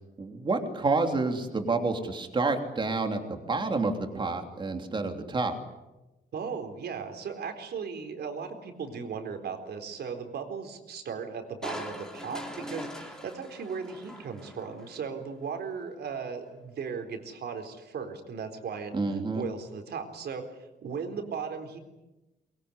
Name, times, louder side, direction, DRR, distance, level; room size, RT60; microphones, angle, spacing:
voice 1, 0.2-5.5 18.9-19.4, right 3 dB, 25° right, 5 dB, 3.1 m, -29 dB
voice 2, 6.3-20.5 20.8-21.8, right 6 dB, 65° right, 6 dB, 4.1 m, -37 dB
Crushing, 11.6-15.0 15.4-15.5, equal, 5° left, 3.3 m, -41 dB
23.5 x 22.5 x 9.7 m, 1.0 s
wide cardioid pair, 175°, 18 cm